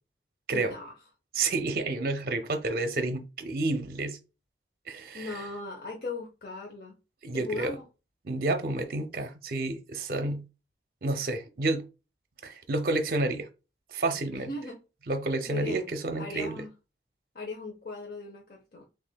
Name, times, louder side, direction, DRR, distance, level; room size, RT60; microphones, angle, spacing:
voice 1, 0.5-0.9 5.1-6.9 7.3-7.8 14.3-14.8 15.5-15.8 16.2-16.7 17.3-18.8, left 3 dB, 55° left, 0.7 m, -38 dB
voice 2, 1.3-4.2 4.9-5.4 7.2-7.8 8.2-10.4 11.0-11.9 12.4-13.5 13.9-14.5 15.1-16.6, right 2 dB, 55° right, 0.5 m, -30 dB
6.1 x 2.5 x 2.2 m
head